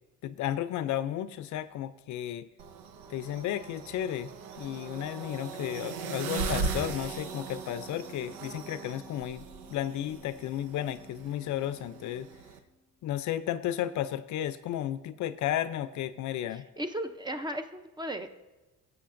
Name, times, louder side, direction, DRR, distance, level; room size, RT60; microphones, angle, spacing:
voice 1, 0.2-2.5 3.1-4.3 4.6-9.4 9.7-12.3 13.0-16.7, left 12 dB, 60° left, 13 dB, 0.5 m, -33 dB
sound 1, 2.6-12.6, right 5 dB, 90° right, 1.0 m, -39 dB
Organ, 6.5-13.1, left 1 dB, 10° left, 1.0 m, -56 dB
voice 2, 16.5-18.3, right 1 dB, 15° right, 7 dB, 0.6 m, -36 dB
17.5 x 7.9 x 2.6 m, 1.1 s
cardioid pair, 125°, 33 cm